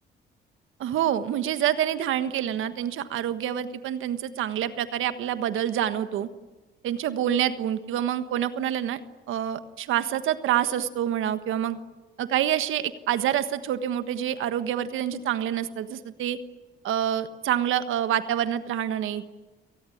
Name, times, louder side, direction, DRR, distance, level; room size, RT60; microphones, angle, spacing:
voice 1, 0.8-6.3 6.8-9.0 9.3-11.8 12.2-16.4 16.8-19.2, right 10 dB, 85° right, 11 dB, 1.4 m, -27 dB
29.5 x 18.5 x 9.9 m, 1.2 s
cardioid pair, 70°, 20 cm